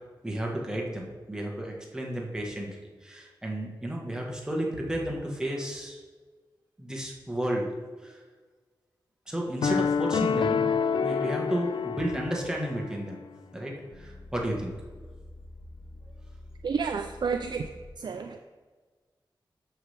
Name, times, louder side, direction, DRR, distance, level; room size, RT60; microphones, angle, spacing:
voice 1, 0.2-2.7 3.0-6.0 6.8-7.7 8.0-8.2 9.3-10.7 11.0-13.2 13.5-14.7, right 1 dB, 10° right, -1 dB, 1.3 m, -32 dB
sound 1, 9.6-12.9, left 6 dB, 70° left, 0.4 m, -27 dB
sound 2, 13.0-17.9, left 1 dB, 30° left, 1.2 m, -48 dB
voice 2, 16.6-18.4, right 5 dB, 60° right, 6 dB, 0.4 m, -31 dB
12.5 x 5.6 x 3.4 m, 1.4 s
wide cardioid pair, 135°, 8 cm